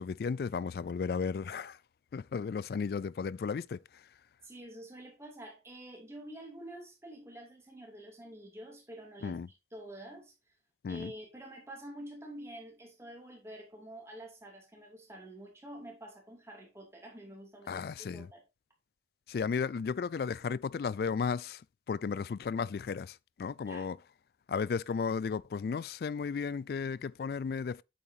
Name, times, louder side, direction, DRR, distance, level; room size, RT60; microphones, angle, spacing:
voice 1, 0.0-1.8 2.1-4.0 9.2-9.5 10.8-11.1 17.7-18.3 19.3-21.6 21.9-24.0 24.5-27.8, left 5 dB, 55° left, 0.3 m, -34 dB
voice 2, 4.4-9.4 9.7-10.3 10.9-18.4 23.7-23.9, right 1 dB, 15° right, 2.7 m, -48 dB
8.6 x 7.2 x 2.7 m
head